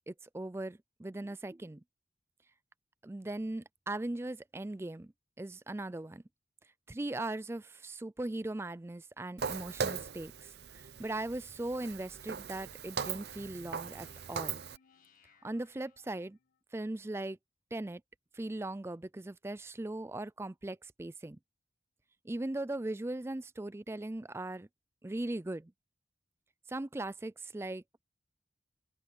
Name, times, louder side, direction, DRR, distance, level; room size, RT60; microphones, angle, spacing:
voice 1, 0.1-1.8 3.0-5.1 5.4-6.2 6.9-14.6 15.4-16.4 16.7-17.4 17.7-18.0 18.3-21.4 22.2-24.7 25.0-25.7 26.7-27.8, right 2 dB, 15° right, 0.4 m, -39 dB
Walk footsteps, 9.4-14.8, right 6 dB, 70° right, 0.6 m, -39 dB
sound 1, 13.3-16.6, left 4 dB, 50° left, 1.7 m, -65 dB
head